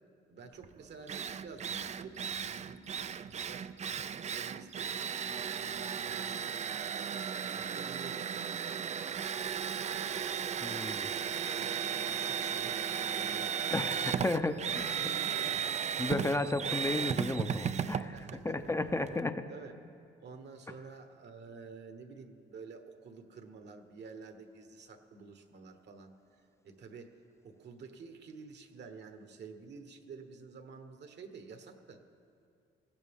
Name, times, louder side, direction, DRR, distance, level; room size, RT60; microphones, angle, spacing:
voice 1, 0.3-3.7 4.3-6.6 7.1-8.6 9.6-10.2 11.0-15.7 18.1-19.0 19.5-19.8 20.2-27.2 27.4-32.0, right 4 dB, 60° right, 7 dB, 1.2 m, -50 dB
Drill, 0.6-0.7 1.1-19.2, right 8 dB, 35° right, 0.4 m, -35 dB
voice 2, 10.6-11.1 13.7-15.1 16.0-18.1 18.4-19.5, left 2 dB, 15° left, 9 dB, 0.6 m, -33 dB
19.5 x 15.5 x 3.6 m, 2.5 s
cardioid pair, 90°, 20 cm